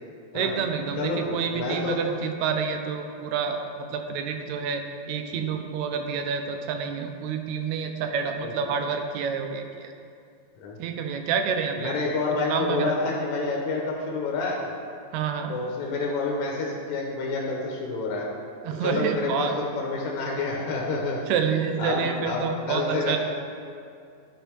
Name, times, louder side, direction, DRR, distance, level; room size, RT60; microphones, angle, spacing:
voice 1, 0.3-4.8 5.1-9.6 10.8-12.0 12.5-12.9 15.1-15.6 18.6-19.5 21.3-23.2, right 6 dB, 80° right, 5 dB, 1.9 m, -28 dB
voice 2, 0.9-2.0 5.3-5.5 8.4-8.5 10.6-10.8 11.8-14.7 15.5-18.3 18.8-21.2 21.8-23.2, left 3 dB, 80° left, -2 dB, 2.2 m, -28 dB
11.0 x 5.1 x 4.5 m, 2.3 s
omnidirectional pair, 3.3 m